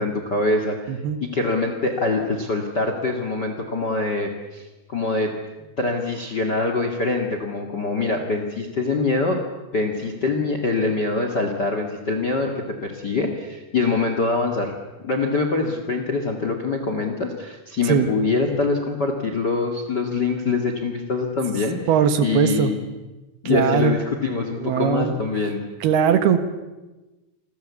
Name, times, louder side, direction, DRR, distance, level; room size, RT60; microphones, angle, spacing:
voice 1, 0.0-0.8 1.2-5.3 5.8-9.4 9.7-14.7 15.0-21.8 22.2-22.8 23.4-25.6, left 3 dB, 65° left, 5 dB, 1.0 m, -24 dB
voice 2, 0.9-1.2 17.8-18.1 21.9-22.7 23.5-23.9 24.6-25.2 25.8-26.4, right 8 dB, 65° right, 9 dB, 3.1 m, -20 dB
28.5 x 21.0 x 8.4 m, 1.1 s
omnidirectional pair, 5.6 m